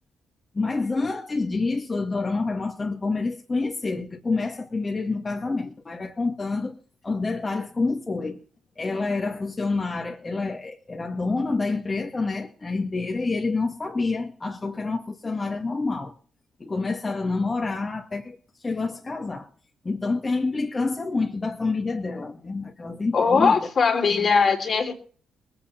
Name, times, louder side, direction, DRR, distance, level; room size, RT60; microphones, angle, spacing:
voice 1, 0.5-6.8 7.0-8.4 8.8-16.1 16.6-19.5 19.8-23.6 24.1-24.3, left 3 dB, 25° left, 2.0 m, -28 dB
voice 2, 23.1-24.9, left 5 dB, 45° left, 3.2 m, -20 dB
20.0 x 8.1 x 5.9 m
cardioid pair, 90°, 0 cm